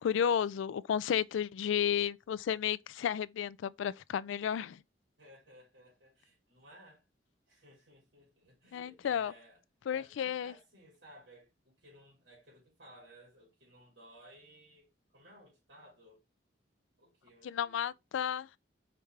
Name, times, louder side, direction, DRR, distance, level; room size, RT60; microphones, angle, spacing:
voice 1, 0.0-4.8 8.7-9.3 9.9-10.5 17.4-18.5, left 8 dB, 90° left, 0.3 m, -32 dB
voice 2, 5.2-7.0 7.5-9.6 9.9-16.2 17.0-17.9, equal, 65° right, 2.5 m, -58 dB
5.0 x 3.3 x 3.2 m
head